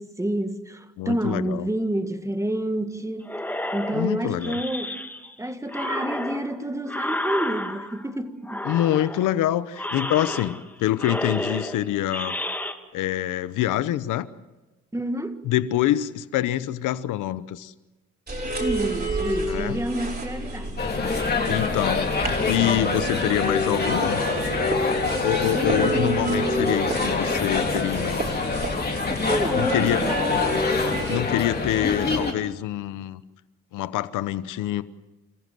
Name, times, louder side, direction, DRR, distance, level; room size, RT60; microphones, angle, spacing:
voice 1, 0.0-3.3 3.7-5.0 5.4-9.0 14.9-15.4 18.6-20.8 25.5-26.6 29.3-30.6, right 1 dB, 10° right, 1.9 m, -29 dB
voice 2, 1.0-1.7 3.9-4.6 8.6-12.4 12.9-14.3 15.4-17.7 19.5-19.8 21.5-22.1 22.4-24.2 25.2-28.4 29.5-30.0 31.1-33.2 33.7-34.8, left 13 dB, 90° left, 1.0 m, -25 dB
sound 1, 3.3-5.3 5.7-8.1 8.4-9.3 9.7-10.7 11.0-12.7, left 1 dB, 5° left, 2.0 m, -31 dB
sound 2, 18.3-31.2, right 1 dB, 30° right, 5.6 m, -30 dB
sound 3, 20.8-32.3, left 4 dB, 30° left, 3.4 m, -26 dB
29.5 x 15.0 x 7.7 m
cardioid pair, 90°, 30 cm